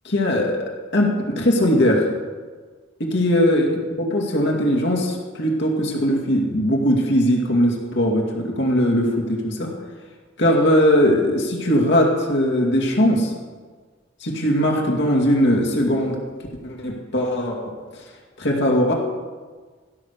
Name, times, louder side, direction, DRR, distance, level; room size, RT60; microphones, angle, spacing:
voice 1, 0.0-0.5 0.9-2.1 3.0-3.7 4.0-9.7 10.4-13.3 14.2-16.2 16.6-17.6 18.4-18.9, equal, 60° left, -1 dB, 2.3 m, -19 dB
16.0 x 6.6 x 6.6 m, 1.5 s
head